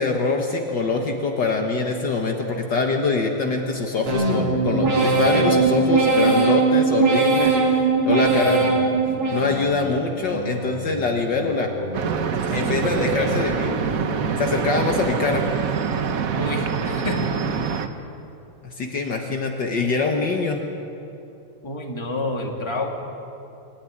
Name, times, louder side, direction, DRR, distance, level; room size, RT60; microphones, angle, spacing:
voice 1, 0.0-7.5 8.1-9.0 9.3-11.7 12.5-13.8 14.4-15.5 18.6-20.6, left 3 dB, 55° left, 2 dB, 2.0 m, -24 dB
sound 1, 4.1-9.9 10.3-10.9 11.4-12.0 12.5-13.1 13.6-14.2 14.7-15.2, right 3 dB, 70° right, 3.9 m, -21 dB
voice 2, 8.1-8.7 12.5-13.4 16.4-17.2 21.6-22.9, left 2 dB, 15° left, 1 dB, 2.2 m, -30 dB
sound 2, 11.9-17.9, right 6 dB, 50° right, 1.2 m, -25 dB
25.0 x 13.0 x 10.0 m, 2.7 s
omnidirectional pair, 2.4 m